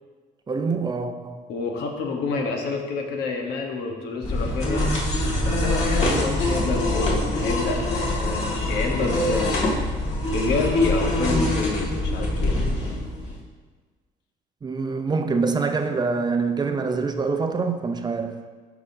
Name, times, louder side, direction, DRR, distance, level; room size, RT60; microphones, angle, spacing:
voice 1, 0.5-1.4 14.6-18.4, right 4 dB, 25° right, 6 dB, 0.6 m, -25 dB
voice 2, 1.5-4.9 5.4-9.7 10.3-12.6, left 4 dB, 80° left, 1 dB, 1.2 m, -28 dB
sound 1, 4.2-13.4, left 1 dB, 40° left, 1.9 m, -24 dB
13.0 x 5.0 x 2.7 m, 1.4 s
cardioid pair, 110°, 17 cm